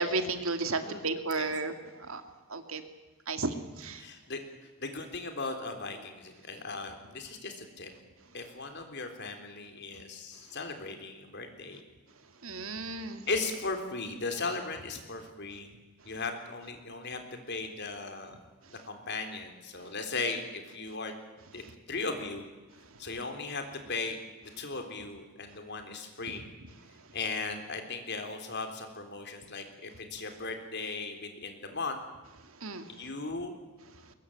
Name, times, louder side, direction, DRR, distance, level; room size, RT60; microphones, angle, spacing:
voice 1, 0.0-1.7 2.1-2.2 2.5-2.8 3.3-4.0 12.4-13.2 32.6-32.9, right 3 dB, 70° right, 8 dB, 2.3 m, -33 dB
voice 2, 0.7-1.0 1.3-1.5 4.0-4.4 4.8-7.9 8.3-11.8 13.3-15.7 16.0-18.4 18.7-21.1 21.5-21.6 21.9-22.4 23.0-26.4 27.1-32.0 32.9-33.5, left 3 dB, 55° left, 6 dB, 3.7 m, -37 dB
22.0 x 21.5 x 8.8 m, 1.2 s
head